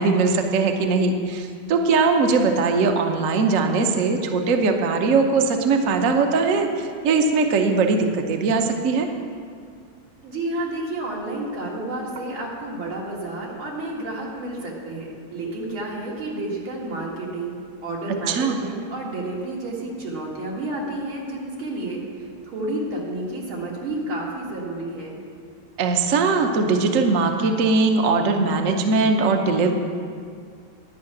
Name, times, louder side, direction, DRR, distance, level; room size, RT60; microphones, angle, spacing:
voice 1, 0.0-9.1 18.3-18.6 25.8-29.7, right 4 dB, 55° right, 4 dB, 0.9 m, -20 dB
voice 2, 10.2-25.2, right 2 dB, 85° right, -3 dB, 2.7 m, -30 dB
10.5 x 5.6 x 8.6 m, 2.1 s
omnidirectional pair, 2.2 m